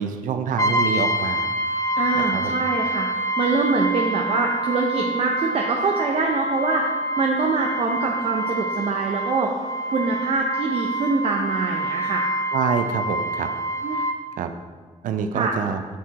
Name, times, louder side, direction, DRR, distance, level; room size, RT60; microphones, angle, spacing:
voice 1, 0.0-1.5 2.1-2.5 12.5-13.5 14.4-14.5 15.0-15.8, right 7 dB, 90° right, 8 dB, 0.6 m, -26 dB
Brass instrument, 0.6-14.2, right 1 dB, 25° left, 0.6 m, -26 dB
voice 2, 2.0-9.6 9.9-12.3 13.8-14.0 15.3-15.5, right 3 dB, 45° right, 1 dB, 0.7 m, -24 dB
8.3 x 4.6 x 4.1 m, 1.5 s
cardioid pair, 115°, 13 cm